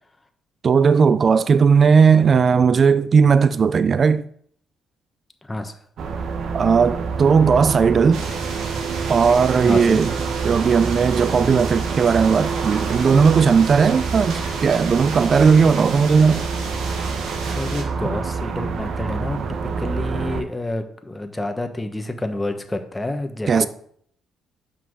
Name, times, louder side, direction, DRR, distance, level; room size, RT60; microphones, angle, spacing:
voice 1, 0.6-4.2 6.5-8.2 9.1-10.1 10.4-16.5 23.5-23.7, right 6 dB, 45° right, 0.4 m, -16 dB
voice 2, 5.4-5.7 9.6-10.1 17.4-23.7, left 1 dB, 15° left, 1.3 m, -29 dB
sound 1, 6.0-20.4, right 5 dB, 65° right, 1.0 m, -27 dB
sound 2, 8.1-17.8, right 4 dB, 85° right, 1.9 m, -34 dB
7.7 x 5.8 x 6.3 m
cardioid pair, 90°, 0 cm